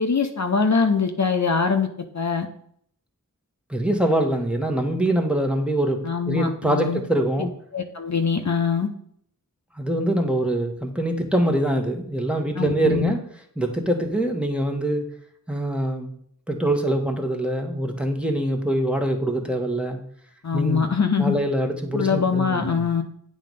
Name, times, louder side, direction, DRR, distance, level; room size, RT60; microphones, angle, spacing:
voice 1, 0.0-1.9 2.1-2.5 6.0-7.0 7.7-8.9 12.6-13.1 20.4-21.4 21.9-23.0, left 5 dB, 55° left, 0.7 m, -23 dB
voice 2, 3.7-6.0 6.3-7.5 9.8-13.2 13.6-15.1 15.5-16.1 16.5-20.0 20.5-20.9 21.2-22.9, right 1 dB, 5° right, 1.0 m, -24 dB
8.5 x 3.1 x 5.3 m
wide cardioid pair, 45°, 33 cm